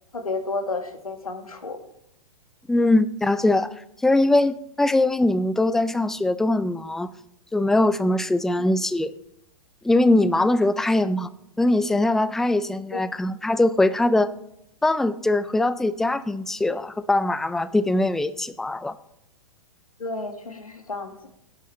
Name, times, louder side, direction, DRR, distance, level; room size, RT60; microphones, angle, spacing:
voice 1, 0.1-1.8 8.6-8.7 12.9-13.0 20.0-21.3, left 3 dB, 85° left, 6 dB, 1.8 m, -31 dB
voice 2, 2.7-3.7 4.0-7.1 7.5-9.1 9.8-11.3 11.6-14.3 14.8-18.9, left 2 dB, ahead, 16 dB, 0.3 m, -21 dB
17.0 x 10.0 x 3.2 m, 0.79 s
figure-of-eight pair, 115°, 18 cm